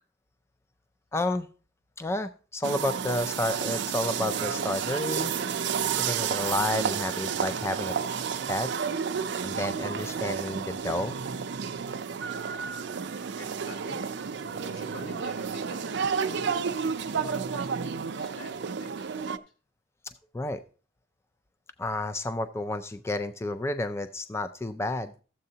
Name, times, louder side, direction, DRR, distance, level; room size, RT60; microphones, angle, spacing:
voice 1, 1.1-1.5 2.0-5.3 5.9-8.2 8.5-8.7 9.4-11.2 20.3-20.6 21.8-25.1, left 1 dB, 15° left, 10 dB, 0.4 m, -31 dB
sound 1, 2.6-19.4, right 6 dB, 65° right, 0.5 m, -31 dB
voice 2, 12.4-19.4, equal, 85° left, 0 dB, 4.4 m, -46 dB
13.5 x 7.7 x 2.8 m, 0.39 s
head